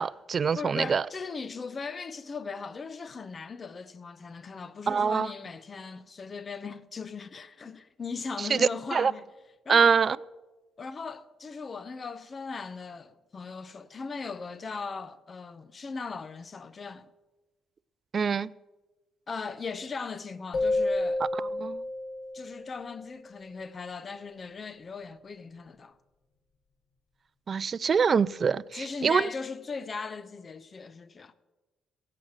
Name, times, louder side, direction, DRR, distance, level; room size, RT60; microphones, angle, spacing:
voice 1, 0.0-1.0 4.9-5.3 8.5-9.1 9.7-10.2 18.1-18.5 21.6-21.8 27.5-29.3, right 6 dB, 45° right, 0.4 m, -24 dB
voice 2, 0.5-9.3 9.6-9.9 10.8-17.1 19.3-21.2 22.3-26.0 28.7-31.3, left 4 dB, 35° left, 0.8 m, -38 dB
sound 1, 20.5-23.2, left 2 dB, 55° left, 1.7 m, -30 dB
16.0 x 7.8 x 7.4 m
cardioid pair, 85°, 0 cm